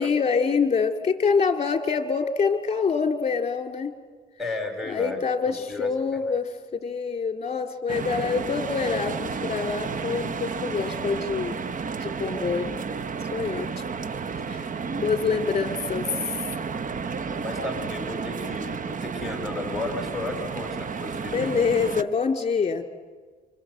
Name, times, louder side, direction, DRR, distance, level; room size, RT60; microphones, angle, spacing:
voice 1, 0.0-3.9 4.9-11.6 12.0-12.7 13.3-13.8 14.5-14.7 15.0-16.3 21.3-22.8, left 5 dB, 30° left, 6 dB, 3.0 m, -26 dB
voice 2, 4.4-5.2 5.7-5.9 17.3-21.6, left 2 dB, ahead, 4 dB, 5.3 m, -33 dB
sound 1, 7.9-22.0, right 5 dB, 40° right, 1.0 m, -32 dB
28.5 x 26.0 x 7.8 m, 1.5 s
cardioid pair, 90°, 20 cm